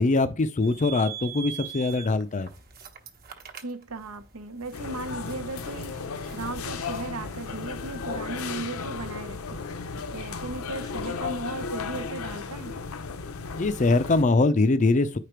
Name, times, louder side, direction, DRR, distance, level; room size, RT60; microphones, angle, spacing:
voice 1, 0.0-2.5 13.6-15.2, left 3 dB, 35° left, 0.5 m, -22 dB
sound 1, 0.6-10.1, right 9 dB, 45° right, 1.2 m, -44 dB
voice 2, 3.6-6.0 6.3-9.6 10.1-12.8, right 2 dB, 75° right, 0.9 m, -36 dB
sound 2, 4.7-14.2, left 4 dB, 70° left, 0.7 m, -35 dB
9.8 x 5.0 x 4.5 m
head